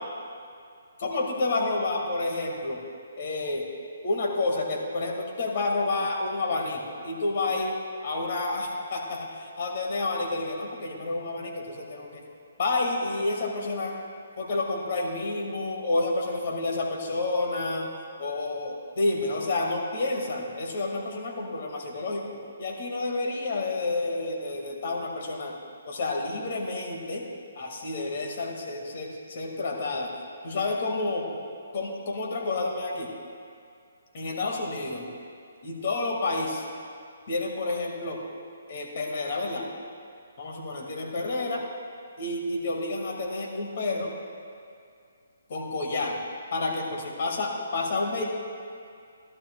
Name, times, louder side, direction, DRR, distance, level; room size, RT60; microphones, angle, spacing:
voice 1, 1.0-2.8 3.2-3.7 4.0-7.7 8.0-12.2 12.6-14.0 14.4-17.9 18.2-22.3 22.6-25.6 25.9-27.2 27.6-30.1 30.4-31.3 31.7-33.1 34.1-35.1 35.6-36.7 37.3-38.2 38.7-39.7 40.4-41.6 42.2-44.1 45.5-46.2 46.5-48.2, left 2 dB, 50° left, 0 dB, 1.8 m, -29 dB
15.0 x 12.0 x 2.3 m, 2.3 s
hypercardioid pair, 155°, 0 cm